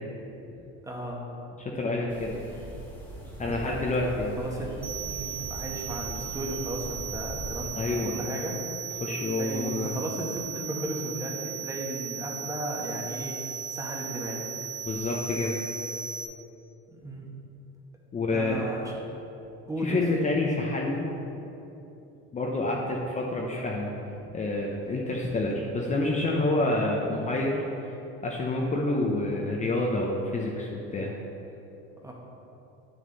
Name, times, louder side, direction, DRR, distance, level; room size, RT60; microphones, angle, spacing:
voice 1, 0.8-1.2 1.5-1.6 3.4-3.8 4.4-4.7 5.1-8.6 9.4-13.4 13.7-14.5 16.9-17.3 18.3-18.9 19.7-20.0 32.0-32.1, right 1 dB, 10° right, -2 dB, 1.4 m, -35 dB
voice 2, 1.6-2.3 3.4-4.4 7.8-8.2 9.0-10.0 14.9-15.6 18.1-18.6 19.8-21.1 22.3-23.9 24.3-27.6 28.2-31.1, left 2 dB, 25° left, -2 dB, 0.8 m, -28 dB
sound 1, 2.1-7.7, right 1 dB, 5° left, 1.8 m, -40 dB
sound 2, 4.8-16.2, right 7 dB, 30° right, 1.2 m, -37 dB
9.0 x 6.4 x 4.1 m, 2.9 s
supercardioid pair, 110°, 30 cm